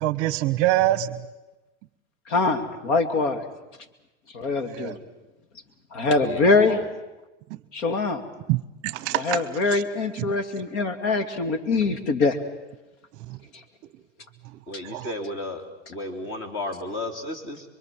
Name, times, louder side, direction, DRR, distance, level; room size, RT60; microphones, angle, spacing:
voice 1, 0.0-1.1 4.7-5.0 8.5-9.4 9.7-9.8 14.9-15.1, right 15 dB, 40° right, 17 dB, 0.9 m, -24 dB
voice 2, 2.3-3.5 4.3-5.0 5.9-6.8 7.7-8.2 9.1-12.4, left 3 dB, 65° left, 8 dB, 2.7 m, -23 dB
voice 3, 6.2-6.8 14.7-15.6 15.9-17.6, left 1 dB, 30° left, 6 dB, 3.3 m, -33 dB
26.0 x 23.5 x 7.6 m, 1.0 s
supercardioid pair, 155°, 38 cm